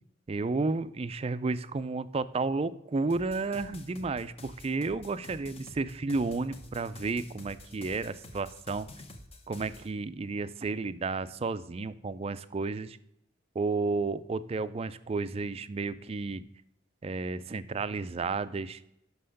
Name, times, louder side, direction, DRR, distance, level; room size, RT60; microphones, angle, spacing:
voice 1, 0.3-8.9 9.5-13.0 13.5-16.4 17.0-18.8, right 3 dB, 30° right, 14 dB, 0.4 m, -32 dB
sound 1, 3.1-9.9, left 1 dB, 30° left, 0.8 m, -49 dB
6.1 x 5.6 x 6.5 m, 0.80 s
head